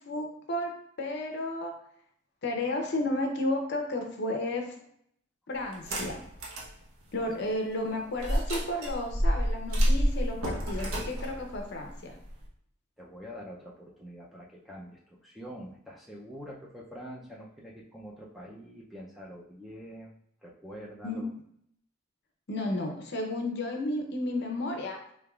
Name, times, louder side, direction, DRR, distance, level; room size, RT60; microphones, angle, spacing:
voice 1, 0.1-0.7 1.0-1.7 2.4-4.7 5.5-6.2 7.1-12.2 21.0-21.2 22.5-25.0, left 1 dB, 55° left, 3 dB, 0.6 m, -32 dB
sound 1, 5.7-6.7 7.2-7.3 8.2-12.5, equal, 80° right, 0.9 m, -28 dB
voice 2, 13.0-20.1 20.4-21.3, equal, ahead, -3 dB, 0.4 m, -45 dB
3.8 x 3.3 x 2.3 m, 0.68 s
head